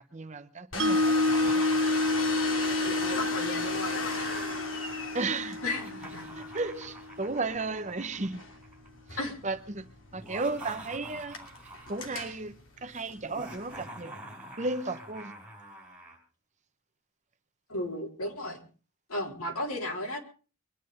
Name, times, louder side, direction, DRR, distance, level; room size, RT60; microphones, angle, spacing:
voice 1, 0.1-1.6 5.1-5.6 6.4-8.4 9.4-9.8 10.1-11.4 11.9-12.5 12.8-14.1 14.6-15.3, right 3 dB, 35° right, 0.9 m, -34 dB
Domestic sounds home sounds, 0.7-13.8, left 3 dB, 60° left, 2.9 m, -38 dB
Mallet percussion, 0.8-7.0, left 2 dB, 55° right, 1.6 m, -29 dB
Laughter, 1.2-4.6 5.6-8.9 10.1-12.1 13.2-16.2, right 1 dB, 5° right, 4.9 m, -46 dB
voice 2, 2.8-4.2 5.6-6.3 9.2-9.4 17.7-18.6 19.1-20.2, left 2 dB, 80° left, 4.0 m, -34 dB
23.0 x 10.0 x 5.2 m
head